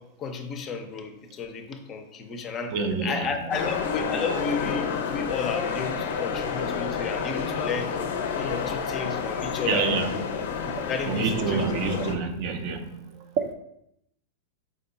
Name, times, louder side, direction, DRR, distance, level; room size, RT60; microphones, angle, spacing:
voice 1, 0.0-2.8 3.0-8.0 8.3-9.9 10.6-11.6, left 5 dB, 30° left, 6 dB, 0.5 m, -32 dB
voice 2, 2.7-3.5 9.7-10.6 11.1-13.3, right 4 dB, 50° right, 7 dB, 0.5 m, -28 dB
sound 1, 3.5-12.2, left 6 dB, 75° left, 0.5 m, -30 dB
4.9 x 2.2 x 3.9 m, 0.79 s
supercardioid pair, 140°, 0 cm